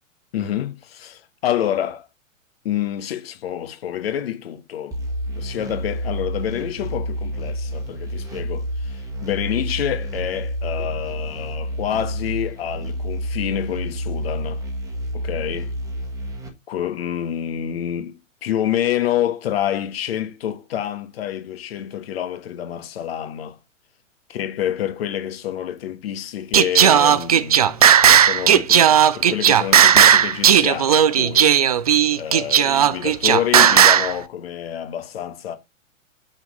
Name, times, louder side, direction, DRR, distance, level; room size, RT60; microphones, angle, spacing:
voice 1, 0.3-2.1 2.6-5.0 5.3-14.6 15.1-15.7 16.7-23.6 24.3-31.5 32.1-35.6, left 10 dB, 45° left, 1.3 m, -27 dB
sound 1, 4.9-16.5, equal, 10° right, 1.5 m, -29 dB
Singing, 26.5-34.1, right 9 dB, 30° right, 0.4 m, -14 dB
6.2 x 6.0 x 3.9 m
figure-of-eight pair, 110°, 40 cm